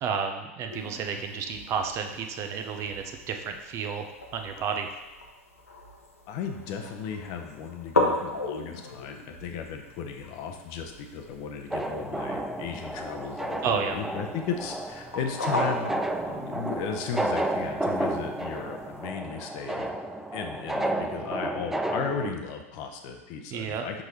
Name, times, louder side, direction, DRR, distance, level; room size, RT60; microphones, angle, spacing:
voice 1, 0.0-4.9 13.6-14.0 23.5-23.9, right 6 dB, 35° right, 5 dB, 0.7 m, -31 dB
sound 1, 0.7-19.1, left 2 dB, 85° left, 0.9 m, -37 dB
voice 2, 6.3-19.9 20.3-24.0, left 6 dB, 50° left, 5 dB, 0.8 m, -35 dB
sound 2, 11.7-22.3, right 1 dB, 5° right, 0.4 m, -32 dB
6.1 x 5.3 x 3.1 m, 1.1 s
figure-of-eight pair, 95°, 8 cm